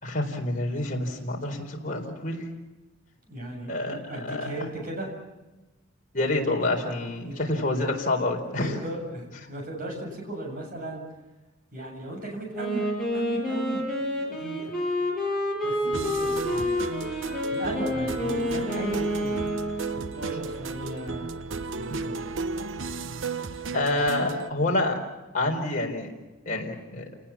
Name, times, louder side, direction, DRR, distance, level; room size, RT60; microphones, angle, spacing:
voice 1, 0.0-2.4 3.7-4.5 6.1-8.7 23.7-25.0 25.3-26.1 26.5-27.0, left 2 dB, 40° left, -1 dB, 4.3 m, -27 dB
voice 2, 3.3-5.1 7.2-7.4 8.6-11.0 11.7-12.9 13.1-13.8 14.2-14.7 15.6-16.8 17.4-19.4 19.8-22.2, right 1 dB, 45° right, 1 dB, 7.7 m, -36 dB
Wind instrument woodwind instrument, 12.5-20.2, equal, ahead, 7.4 m, -28 dB
sound 1, 15.8-24.5, right 3 dB, 65° right, 0.8 m, -34 dB
29.5 x 19.5 x 7.3 m, 1.1 s
head